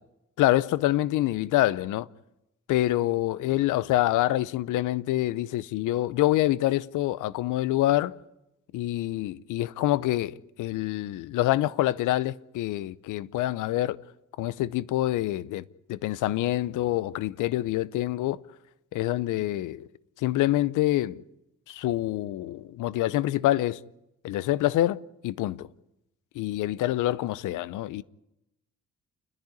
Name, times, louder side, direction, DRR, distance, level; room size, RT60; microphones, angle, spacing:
voice 1, 0.4-2.1 2.7-8.1 8.7-14.0 14.4-15.6 15.9-18.4 18.9-19.9 20.2-21.2 21.7-23.8 24.2-25.7 26.3-28.0, left 15 dB, 85° left, 0.7 m, -26 dB
29.5 x 10.5 x 9.6 m
cardioid pair, 90°, 30 cm